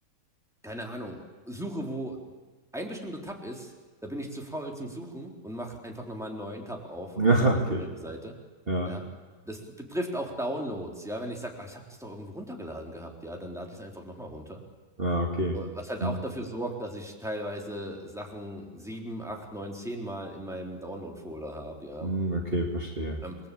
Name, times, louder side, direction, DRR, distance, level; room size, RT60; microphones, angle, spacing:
voice 1, 0.6-2.2 2.7-3.7 4.0-8.4 8.8-9.0 9.5-14.6 15.5-22.1 23.2-23.4, equal, ahead, 1 dB, 3.9 m, -37 dB
voice 2, 7.2-7.8 8.7-8.9 15.0-15.5 16.0-16.1 22.0-23.2, right 2 dB, 30° right, 0 dB, 2.9 m, -26 dB
29.0 x 22.0 x 8.6 m, 1.3 s
omnidirectional pair, 1.9 m